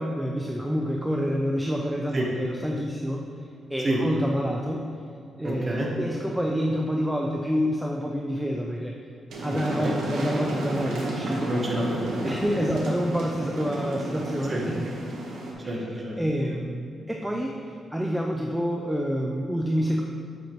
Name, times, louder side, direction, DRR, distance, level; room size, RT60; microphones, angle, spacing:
voice 1, 0.0-3.3 3.7-4.8 5.4-8.9 9.4-11.5 12.2-14.9 15.6-15.8 16.2-20.0, equal, ahead, 0 dB, 0.3 m, -28 dB
voice 2, 5.4-5.9 9.5-9.9 11.5-12.7 14.5-14.6 15.7-16.2, right 1 dB, 25° right, -2 dB, 1.0 m, -29 dB
sound 1, 9.3-15.5, right 2 dB, 80° right, 1.1 m, -32 dB
7.6 x 5.1 x 3.0 m, 2.4 s
wide cardioid pair, 170°, 0 cm